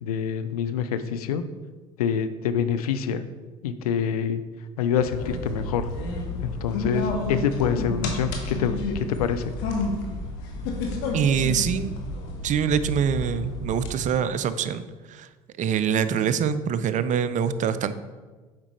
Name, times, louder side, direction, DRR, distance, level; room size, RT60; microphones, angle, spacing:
voice 1, 0.0-1.4 2.0-3.2 3.6-4.4 4.8-5.9 6.4-9.5, left 7 dB, 90° left, 11 dB, 0.4 m, -26 dB
sound 1, 5.0-13.9, left 2 dB, 70° left, 1.1 m, -30 dB
voice 2, 11.1-11.9 12.4-15.3 15.6-17.9, right 7 dB, 45° right, 13 dB, 0.4 m, -24 dB
7.3 x 5.1 x 3.1 m, 1.3 s
hypercardioid pair, 70°, 19 cm